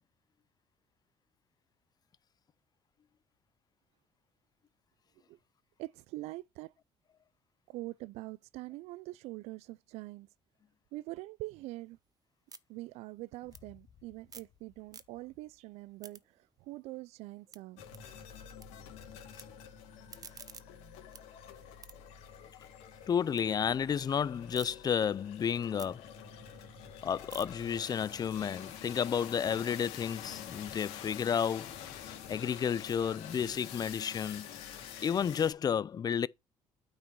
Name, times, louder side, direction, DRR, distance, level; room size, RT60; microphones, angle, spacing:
voice 1, 5.8-6.7 7.7-10.3 10.9-12.0 12.7-16.2 16.6-17.8, right 19 dB, 80° right, 0.4 m, -44 dB
sound 1, 11.6-14.6 14.8-15.5 15.8-18.7 19.0-19.4 19.9-23.5 23.8-24.7 25.1-29.3, right 6 dB, 35° right, 0.9 m, -55 dB
sound 2, 13.4-16.4, left 8 dB, 60° left, 1.8 m, -64 dB
sound 3, 17.8-35.5, left 9 dB, 90° left, 2.2 m, -47 dB
voice 2, 23.1-26.1 27.0-34.5 35.0-36.3, left 8 dB, 40° left, 0.5 m, -32 dB
9.1 x 5.0 x 4.7 m
supercardioid pair, 80°, 11 cm